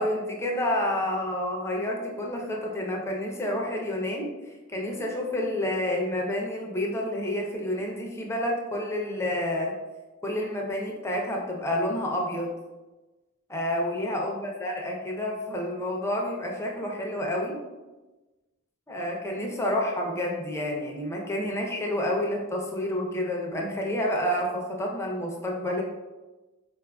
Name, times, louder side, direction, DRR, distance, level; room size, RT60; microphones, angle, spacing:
voice 1, 0.0-4.4 4.7-9.8 10.2-12.5 13.5-17.6 18.9-25.8, left 1 dB, 15° left, 0 dB, 0.4 m, -29 dB
4.1 x 2.4 x 2.2 m, 1.2 s
head